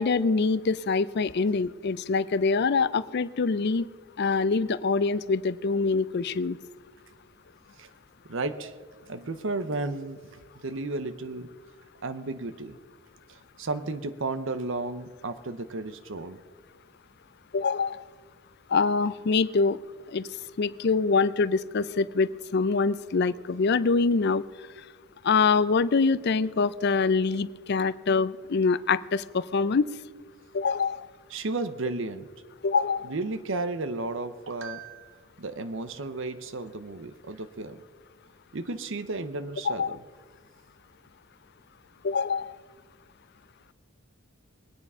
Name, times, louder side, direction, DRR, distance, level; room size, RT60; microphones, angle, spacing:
voice 1, 0.0-3.9 4.2-6.6 17.5-18.0 18.7-19.8 20.1-20.3 20.6-24.4 25.2-29.9 30.5-31.1 32.6-33.1 39.7-40.0 42.0-42.6, left 4 dB, 50° left, 16 dB, 0.4 m, -25 dB
voice 2, 8.3-8.7 9.0-11.5 12.0-12.8 13.3-16.4 31.3-32.3 33.0-37.8 38.5-40.0, right 3 dB, 60° right, 11 dB, 0.7 m, -33 dB
21.0 x 9.7 x 5.5 m, 1.5 s
head